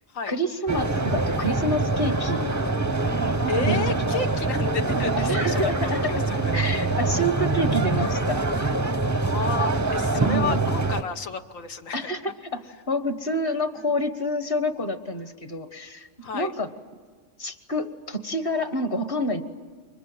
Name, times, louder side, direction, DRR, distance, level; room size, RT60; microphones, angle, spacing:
voice 1, 0.3-2.5 3.7-3.8 4.1-4.2 5.2-6.1 6.5-8.4 10.1-10.6 11.9-16.1 16.3-16.7 17.4-19.4, equal, 45° left, 9 dB, 1.5 m, -28 dB
sound 1, 0.7-11.0, right 3 dB, 20° right, 0.6 m, -24 dB
voice 2, 3.5-6.6 8.1-8.3 9.2-12.1 16.2-16.5, left 4 dB, 80° left, 7 dB, 1.5 m, -32 dB
29.5 x 24.5 x 7.8 m, 1.5 s
omnidirectional pair, 1.3 m